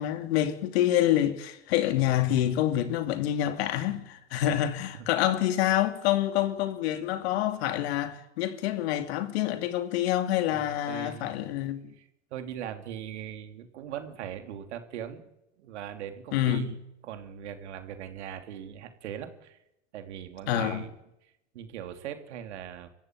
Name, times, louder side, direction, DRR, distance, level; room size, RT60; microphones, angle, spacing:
voice 1, 0.0-11.9 16.3-16.7 20.5-20.8, left 12 dB, 60° left, 2.8 m, -27 dB
voice 2, 10.5-11.3 11.9-15.2 15.6-16.7 17.0-19.6 19.9-20.9 21.5-22.9, right 9 dB, 75° right, 3.4 m, -40 dB
25.0 x 14.5 x 9.8 m
hypercardioid pair, 125°, 35 cm